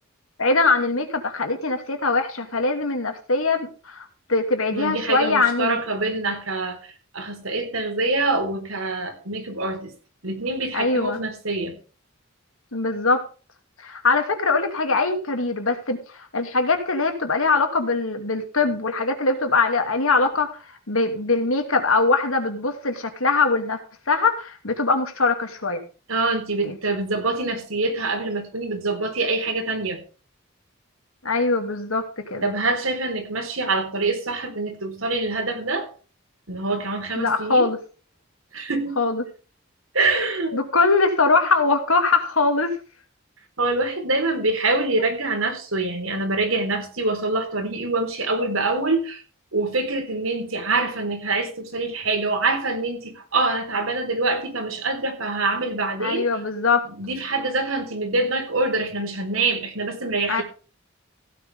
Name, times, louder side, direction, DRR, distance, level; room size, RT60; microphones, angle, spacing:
voice 1, 0.4-5.8 10.7-11.2 12.7-13.2 13.8-20.6 20.9-23.8 24.1-25.8 26.6-26.8 31.2-32.5 37.2-37.8 39.0-39.2 40.5-42.8 56.0-56.9 60.3-60.4, left 3 dB, 90° left, 2.7 m, -22 dB
voice 2, 4.7-9.9 10.2-11.8 26.1-30.0 32.4-35.9 36.5-37.7 38.5-39.0 39.9-40.7 43.6-49.2 49.5-56.3 56.9-60.4, right 2 dB, 85° right, 4.2 m, -25 dB
16.0 x 9.6 x 3.6 m
head